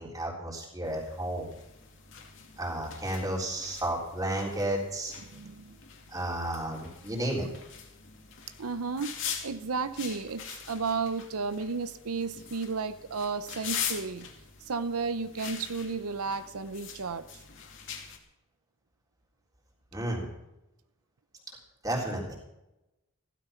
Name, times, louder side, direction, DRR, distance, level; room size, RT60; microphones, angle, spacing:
voice 1, 0.0-1.5 2.6-5.1 6.1-7.5 19.9-20.3 21.8-22.4, right 1 dB, 15° right, -1 dB, 3.9 m, -32 dB
sound 1, 0.8-18.2, left 7 dB, 55° left, 2.5 m, -43 dB
voice 2, 5.2-5.8 8.6-14.3 14.6-17.4, right 4 dB, 90° right, 12 dB, 0.7 m, -33 dB
16.0 x 12.5 x 5.8 m, 0.91 s
head